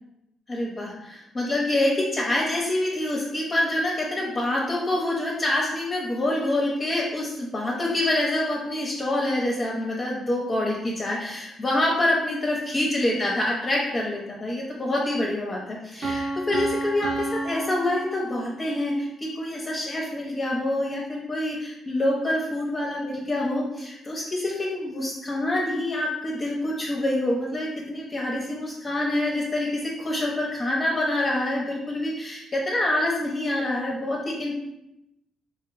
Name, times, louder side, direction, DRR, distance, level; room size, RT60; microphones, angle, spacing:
voice 1, 0.5-34.6, left 1 dB, 30° left, -3 dB, 0.5 m, -26 dB
Piano, 16.0-18.8, right 2 dB, 45° right, 0.7 m, -31 dB
3.1 x 2.9 x 2.4 m, 0.85 s
cardioid pair, 90°, 0 cm